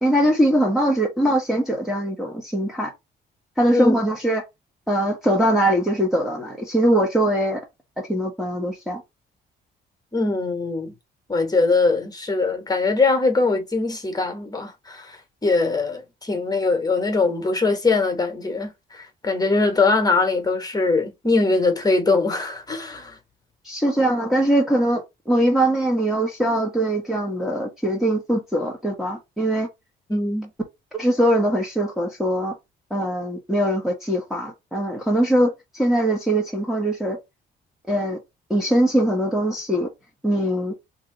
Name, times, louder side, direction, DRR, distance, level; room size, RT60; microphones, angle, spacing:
voice 1, 0.0-2.9 3.6-4.4 4.9-7.6 8.1-9.0 23.6-29.7 30.9-32.5 32.9-37.2 37.9-38.2 38.5-39.9 40.2-40.7, right 1 dB, ahead, 1.0 m, -21 dB
voice 2, 10.1-10.9 11.3-23.2 30.1-30.5, left 3 dB, 20° left, 1.2 m, -22 dB
3.0 x 2.8 x 3.8 m
cardioid pair, 90°, 20 cm